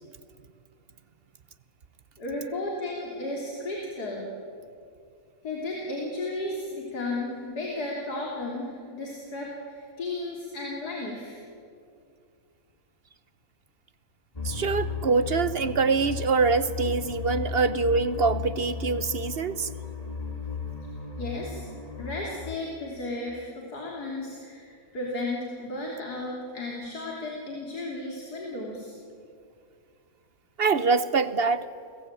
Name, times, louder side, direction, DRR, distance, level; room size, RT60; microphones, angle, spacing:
voice 1, 2.2-4.3 5.4-11.4 21.2-21.7 22.0-28.9, left 2 dB, 90° left, -2 dB, 3.9 m, -34 dB
sound 1, 14.4-22.6, left 5 dB, 25° left, 2.3 m, -35 dB
voice 2, 14.4-19.7 30.6-31.7, right 4 dB, 45° right, 14 dB, 0.9 m, -24 dB
29.5 x 21.0 x 9.1 m, 2.3 s
omnidirectional pair, 1.6 m